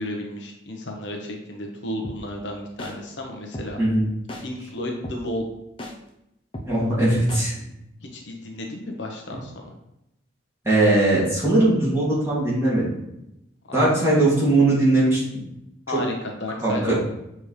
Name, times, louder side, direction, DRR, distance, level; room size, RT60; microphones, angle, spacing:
voice 1, 0.0-3.8 4.4-5.5 8.0-9.7 13.7-14.2 15.9-17.0, left 1 dB, 70° left, 1 dB, 1.0 m, -33 dB
sound 1, 2.0-2.2 2.8-2.9 3.5-3.7 4.3-4.4 5.0-5.2 5.8-5.9 6.5-6.7 7.3-7.4, left 1 dB, 25° left, 0.7 m, -34 dB
voice 2, 6.7-7.5 10.6-12.9 13.7-15.2 16.6-17.0, right 2 dB, 15° right, -8 dB, 2.4 m, -19 dB
6.8 x 4.4 x 3.3 m, 0.85 s
head